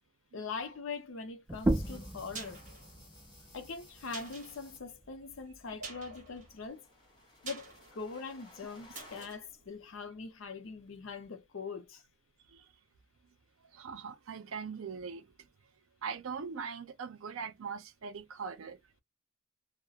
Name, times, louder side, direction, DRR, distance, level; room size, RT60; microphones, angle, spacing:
voice 1, 0.3-2.6 3.5-6.8 7.4-12.0, left 4 dB, 75° left, 0.6 m, -42 dB
sound 1, 1.5-4.8 5.9-9.3, left 1 dB, 20° left, 1.2 m, -58 dB
sound 2, 1.5-6.7, right 1 dB, 10° right, 0.3 m, -37 dB
sound 3, 2.0-10.8 11.1-11.2, right 4 dB, 35° right, 1.0 m, -50 dB
voice 2, 13.7-15.3 16.0-18.8, right 6 dB, 80° right, 0.5 m, -41 dB
2.4 x 2.1 x 2.7 m
head